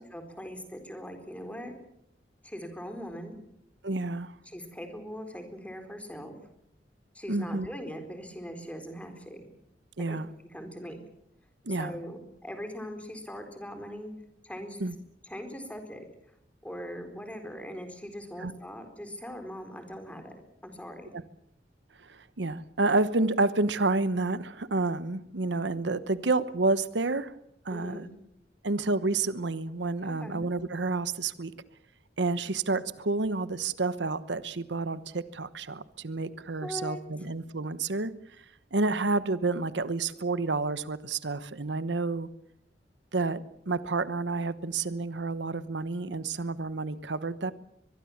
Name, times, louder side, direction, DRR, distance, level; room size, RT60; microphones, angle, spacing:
voice 1, 0.1-1.7 2.4-3.3 4.4-6.4 7.1-9.5 10.1-11.0 11.7-14.1 14.4-14.8 15.2-16.0 16.6-20.3 20.6-21.1 27.7-28.1 30.0-30.4 36.6-37.0, equal, 10° left, 6 dB, 4.3 m, -41 dB
voice 2, 3.8-4.3 7.3-7.7 10.0-10.3 11.7-11.9 14.8-14.9 18.4-18.5 21.1-21.2 22.1-27.3 27.6-28.0 28.6-31.5 32.2-38.1 38.7-42.3 43.1-47.5, right 3 dB, 90° right, 15 dB, 1.1 m, -29 dB
23.0 x 22.0 x 7.3 m, 0.74 s
head